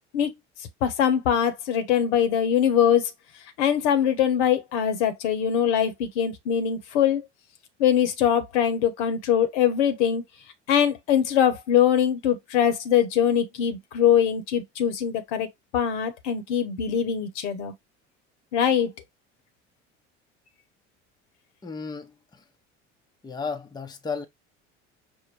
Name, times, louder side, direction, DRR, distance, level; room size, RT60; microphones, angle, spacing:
voice 1, 0.8-3.1 3.6-7.3 7.8-10.2 10.7-15.5 15.7-17.7 18.5-18.9, left 9 dB, 70° left, 1.1 m, -22 dB
voice 2, 21.6-22.4 23.2-24.3, left 5 dB, 10° left, 0.7 m, -34 dB
5.5 x 2.1 x 4.4 m
figure-of-eight pair, 65°, 36 cm